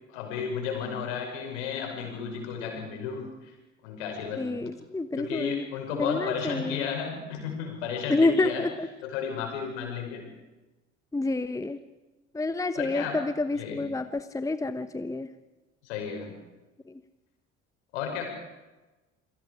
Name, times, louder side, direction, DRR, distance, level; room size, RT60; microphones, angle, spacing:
voice 1, 0.1-3.3 3.8-4.7 5.2-8.6 9.0-10.2 12.7-13.2 13.5-13.8 15.8-16.3 17.9-18.3, left 7 dB, 70° left, 2 dB, 6.1 m, -33 dB
voice 2, 4.4-5.7 5.9-6.9 8.1-8.9 11.1-11.8 12.3-15.3 16.9-17.0, left 2 dB, 10° left, 12 dB, 1.0 m, -28 dB
28.5 x 22.5 x 5.1 m, 1.1 s
figure-of-eight pair, 55°, 37 cm